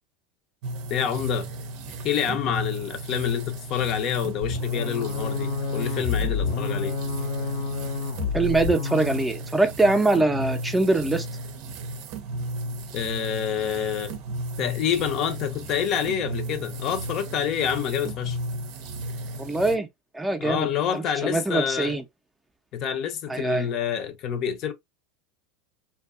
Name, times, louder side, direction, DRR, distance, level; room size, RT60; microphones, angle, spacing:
sound 1, 0.6-19.8, right 2 dB, 60° right, 0.5 m, -34 dB
voice 1, 0.9-1.5 2.0-7.0 12.9-14.1 14.6-18.4 20.4-22.0 22.7-24.7, left 8 dB, 50° left, 0.5 m, -27 dB
sound 2, 4.4-9.3, left 5 dB, 80° left, 0.9 m, -29 dB
voice 2, 8.3-11.3 19.4-19.9 20.1-20.7 20.9-22.0 23.3-23.7, right 2 dB, 10° right, 0.5 m, -23 dB
2.5 x 2.2 x 2.4 m
hypercardioid pair, 100°, 0 cm